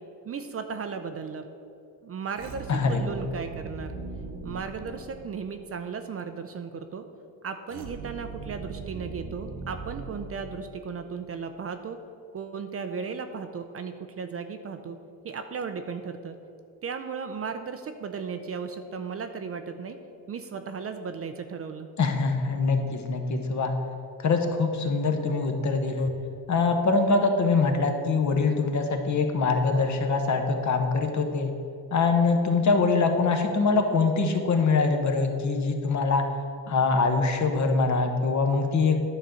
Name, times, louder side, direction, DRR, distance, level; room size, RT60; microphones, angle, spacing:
voice 1, 0.3-1.4 2.0-4.0 4.4-7.1 7.4-12.0 12.3-15.0 15.2-16.3 16.8-20.0 20.3-21.9, right 5 dB, 35° right, 8 dB, 0.5 m, -35 dB
sound 1, 2.3-5.7 7.7-11.0, right 3 dB, 65° right, 1.2 m, -40 dB
voice 2, 2.7-3.1 22.0-23.7 24.2-26.1 26.5-31.5 31.9-36.3 36.7-39.0, left 4 dB, 45° left, 4 dB, 1.0 m, -24 dB
10.5 x 3.8 x 6.8 m, 2.6 s
cardioid pair, 105°, 41 cm